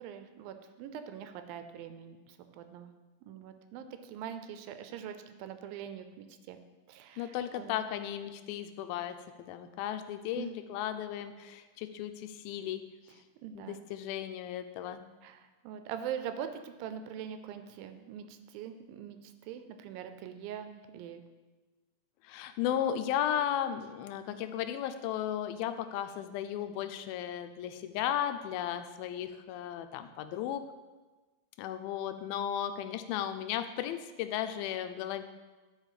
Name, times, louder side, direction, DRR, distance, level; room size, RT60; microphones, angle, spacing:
voice 1, 0.0-2.9 3.3-6.6 6.9-7.8 10.4-10.6 13.4-13.8 15.2-21.2, right 9 dB, 80° right, 9 dB, 2.3 m, -43 dB
voice 2, 7.2-12.8 13.6-15.0 22.2-30.6 31.6-35.2, left 10 dB, 90° left, 9 dB, 2.4 m, -35 dB
11.0 x 4.5 x 4.9 m, 1.3 s
omnidirectional pair, 4.2 m